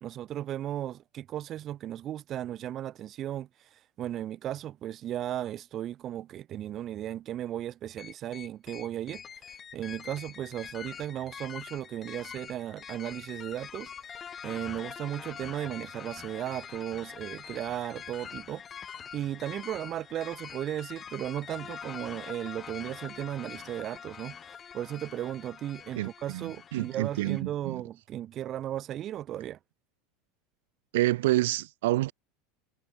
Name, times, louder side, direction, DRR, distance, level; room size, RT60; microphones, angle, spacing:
voice 1, 0.0-13.9 14.4-18.6 19.1-24.4 24.7-29.6, right 12 dB, 30° right, 1.1 m, -36 dB
sound 1, 8.0-27.4, left 7 dB, 20° left, 2.5 m, -44 dB
voice 2, 26.0-27.8 30.9-32.1, right 17 dB, 90° right, 0.6 m, -28 dB
supercardioid pair, 170°, 0 cm